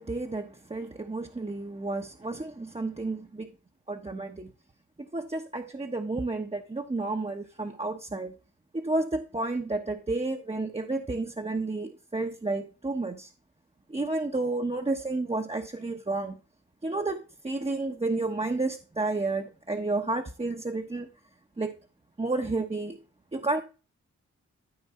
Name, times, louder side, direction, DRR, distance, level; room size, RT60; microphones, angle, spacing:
voice 1, 0.0-3.5 3.9-4.5 5.1-8.3 8.7-13.3 13.9-16.4 16.8-21.1 21.6-21.7 22.2-23.0 23.3-23.6, right 2 dB, 20° right, 1.0 m, -31 dB
13.5 x 4.6 x 4.2 m
cardioid pair, 60°, 29 cm